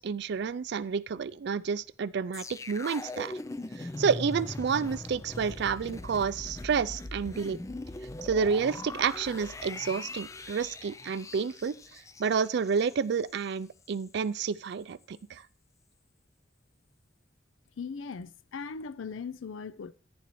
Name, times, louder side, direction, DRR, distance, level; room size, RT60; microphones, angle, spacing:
voice 1, 0.0-3.4 3.8-7.6 8.2-11.7 12.2-15.4, right 6 dB, 60° right, 0.4 m, -30 dB
sound 1, 2.3-13.5 13.8-14.0, left 2 dB, 15° left, 0.4 m, -41 dB
voice 2, 17.8-19.9, left 5 dB, 85° left, 0.5 m, -39 dB
11.0 x 9.5 x 3.1 m
head